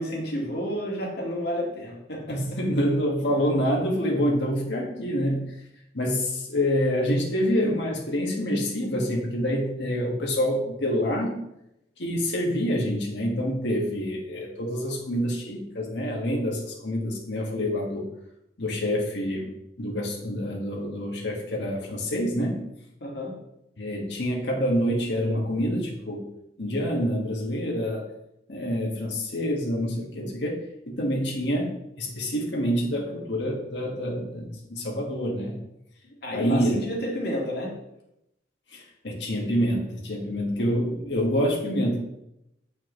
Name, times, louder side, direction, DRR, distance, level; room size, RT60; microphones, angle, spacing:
voice 1, 0.0-2.4 23.0-23.3 36.2-37.7 40.6-41.0, equal, 65° left, -2 dB, 1.9 m, -31 dB
voice 2, 2.3-5.6 5.9-11.3 12.0-18.1 18.6-19.5 19.8-22.6 23.8-26.2 26.6-28.0 28.5-35.6 36.3-36.8 38.7-42.0, equal, 80° left, -2 dB, 1.6 m, -27 dB
8.5 x 5.7 x 3.1 m, 0.83 s
head